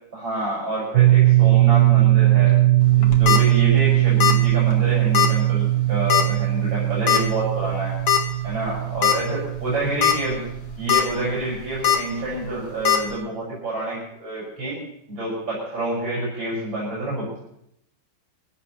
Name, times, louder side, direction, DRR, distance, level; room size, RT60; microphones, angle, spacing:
voice 1, 0.1-2.6 3.0-8.0 8.4-10.5 10.8-14.8 15.1-17.4, right 2 dB, 85° right, -8 dB, 7.2 m, -28 dB
sound 1, 0.9-11.5, right 16 dB, 65° right, 1.3 m, -19 dB
sound 2, 2.9-3.4 4.2-4.5 4.7-4.8 5.1-5.3 6.1-6.4 7.1-7.2 8.1-8.2 8.7-8.8 9.0-9.1 9.8-10.1 10.6-11.0 11.8-12.0 12.8-13.0, left 9 dB, 90° left, 2.5 m, -18 dB
24.0 x 16.5 x 3.3 m, 0.76 s
omnidirectional pair, 2.1 m